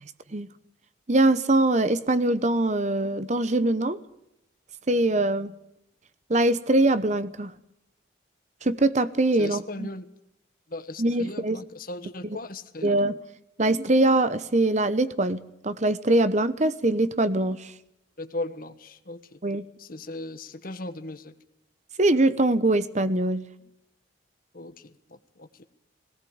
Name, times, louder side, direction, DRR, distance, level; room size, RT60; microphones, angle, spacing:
voice 1, 1.1-4.0 4.9-5.5 6.3-7.5 8.6-9.9 11.0-11.6 12.8-13.2 13.6-17.7 19.4-19.6 22.0-23.5, right 2 dB, 35° right, 14 dB, 0.9 m, -23 dB
voice 2, 9.4-10.1 10.7-13.0 18.2-19.4 19.8-21.3 24.5-25.6, left 2 dB, 45° left, 10 dB, 1.3 m, -37 dB
19.0 x 18.0 x 8.7 m, 0.83 s
head